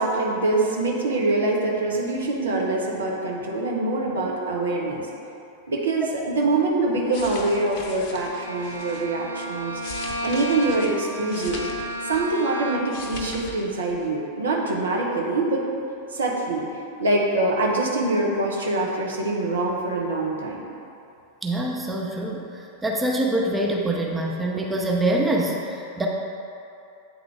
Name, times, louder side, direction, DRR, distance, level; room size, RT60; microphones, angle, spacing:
voice 1, 0.0-5.1 5.7-11.7 12.0-15.7 16.1-16.7 17.0-20.6, right 2 dB, 70° right, -2 dB, 0.9 m, -24 dB
sound 1, 6.9-9.1 9.6-12.5 12.8-13.6 13.8-14.1, left 3 dB, 45° left, 0.7 m, -39 dB
Bowed string instrument, 8.1-13.1, right 1 dB, 85° left, 0.5 m, -33 dB
voice 2, 21.4-26.1, right 1 dB, 10° right, -1 dB, 0.6 m, -25 dB
8.8 x 3.8 x 3.4 m, 2.7 s
figure-of-eight pair, 90°, 0 cm